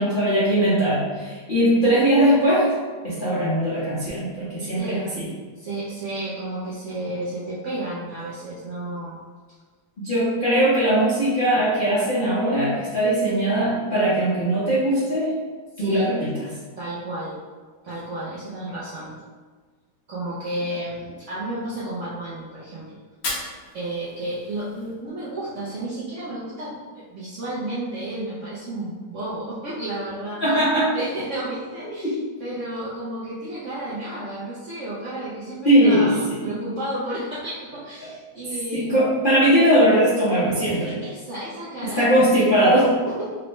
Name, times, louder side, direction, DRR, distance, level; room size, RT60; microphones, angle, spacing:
voice 1, 0.0-2.7 3.0-5.3 10.0-15.3 15.8-16.3 30.4-31.0 35.6-36.1 36.4-36.5 38.7-41.0 42.0-42.9, right 1 dB, 50° left, -11 dB, 0.6 m, -20 dB
voice 2, 4.6-5.0 5.6-9.2 15.8-16.1 16.8-17.4 17.8-19.1 20.1-23.0 23.7-30.6 30.9-39.0 40.6-42.1 43.1-43.4, right 1 dB, 65° right, -8 dB, 0.7 m, -32 dB
Fire, 23.1-25.1, left 2 dB, 80° left, 1.6 m, -35 dB
3.9 x 2.2 x 3.0 m, 1.4 s
omnidirectional pair, 1.9 m